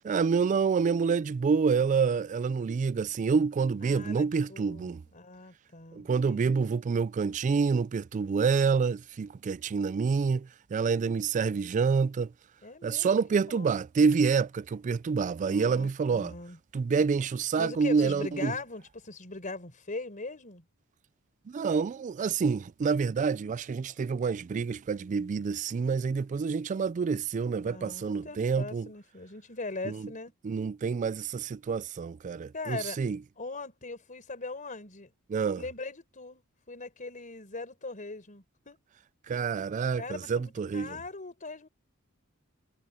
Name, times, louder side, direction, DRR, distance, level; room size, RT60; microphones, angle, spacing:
voice 1, 0.0-5.0 5.9-12.3 12.8-16.3 16.7-18.5 21.5-28.9 29.8-30.1 30.4-33.2 35.3-35.6 39.3-41.0, right 5 dB, 35° right, 0.3 m, -27 dB
voice 2, 3.8-6.8 12.6-13.2 13.5-13.8 15.5-16.6 17.6-20.6 27.6-30.3 32.5-33.0 33.4-35.1 35.6-38.8 40.0-41.7, left 3 dB, 40° left, 4.5 m, -40 dB
head